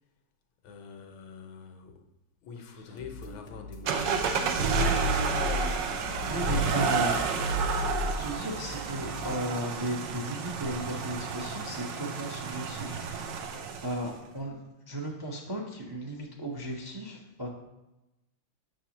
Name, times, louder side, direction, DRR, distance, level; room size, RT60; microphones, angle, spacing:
voice 1, 0.6-2.0 2.4-4.8 5.9-6.7, left 5 dB, 85° left, 4 dB, 1.6 m, -46 dB
sound 1, 2.9-9.4, left 2 dB, 50° left, 0.7 m, -45 dB
sound 2, 3.9-14.1, right 4 dB, 75° right, 1.3 m, -30 dB
voice 2, 6.3-7.2 8.0-13.0 13.8-14.6 14.9-17.5, right 1 dB, 40° right, -1 dB, 0.3 m, -35 dB
7.7 x 6.2 x 2.9 m, 0.96 s
omnidirectional pair, 2.1 m